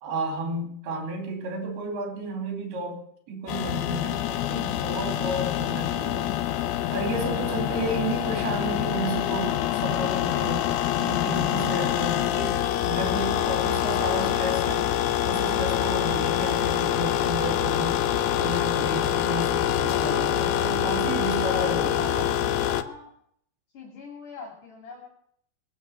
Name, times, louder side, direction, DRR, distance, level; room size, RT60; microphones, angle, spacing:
voice 1, 0.0-3.0 3.3-6.4 6.9-10.7 11.0-14.9 15.2-18.0 18.4-22.2, right 1 dB, 80° right, 4 dB, 4.8 m, -32 dB
sound 1, 3.5-22.8, left 11 dB, 85° left, 1.7 m, -25 dB
voice 2, 21.2-23.1 23.7-25.1, left 4 dB, 55° left, 0 dB, 4.3 m, -39 dB
21.5 x 7.3 x 8.4 m, 0.67 s
omnidirectional pair, 4.5 m